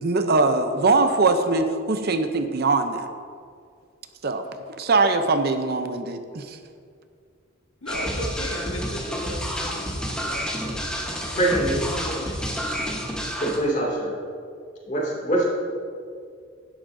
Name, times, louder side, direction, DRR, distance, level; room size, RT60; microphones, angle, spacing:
voice 1, 0.0-3.1 4.2-4.4 4.8-6.6, right 3 dB, 50° right, 8 dB, 0.6 m, -22 dB
voice 2, 7.8-10.5 11.3-12.4, left 1 dB, 85° left, -1 dB, 1.7 m, -34 dB
sound 1, 7.9-13.6, equal, 5° left, 1.2 m, -29 dB
voice 3, 11.4-11.8 12.0-12.1 13.4-14.1 14.9-15.5, right 1 dB, 40° left, -4 dB, 2.5 m, -24 dB
11.0 x 11.0 x 2.7 m, 2.3 s
head